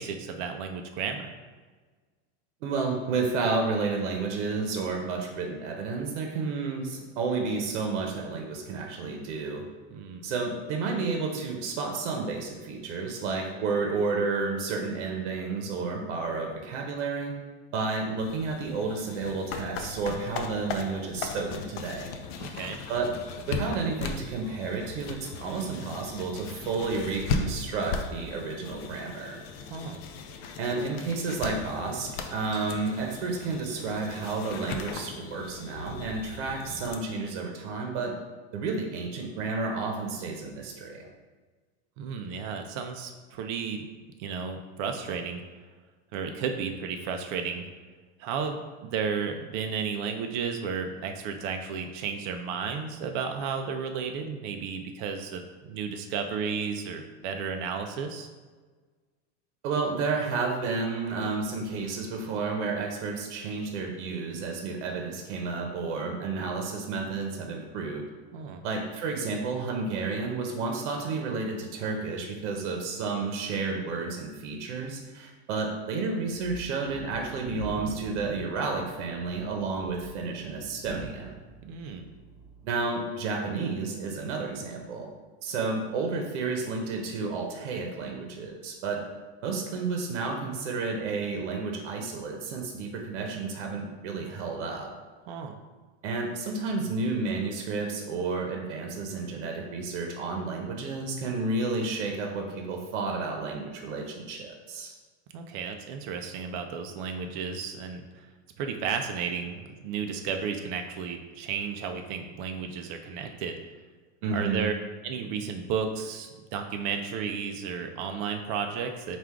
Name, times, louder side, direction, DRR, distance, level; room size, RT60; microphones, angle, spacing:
voice 1, 0.0-1.3 9.9-10.3 22.4-22.8 29.6-30.0 42.0-43.9 44.2-45.4 46.1-47.7 48.2-58.3 68.3-68.6 81.6-82.1 95.3-95.6 105.3-108.3 108.6-113.6 114.3-114.7 115.0-119.2, right 6 dB, 45° right, 5 dB, 0.4 m, -33 dB
voice 2, 2.6-9.6 10.2-17.3 17.7-22.2 22.9-23.1 23.5-29.4 30.6-38.1 38.5-41.1 59.6-68.0 68.6-81.4 82.6-85.1 85.4-89.0 89.4-94.9 96.0-104.9 114.2-114.6, right 4 dB, 80° right, 2 dB, 0.8 m, -31 dB
sound 1, 18.2-37.0, left 5 dB, 55° left, 0.5 m, -37 dB
sound 2, 76.3-82.6, right 2 dB, 20° right, 0.9 m, -44 dB
3.6 x 2.4 x 4.5 m, 1.4 s
supercardioid pair, 155°, 35 cm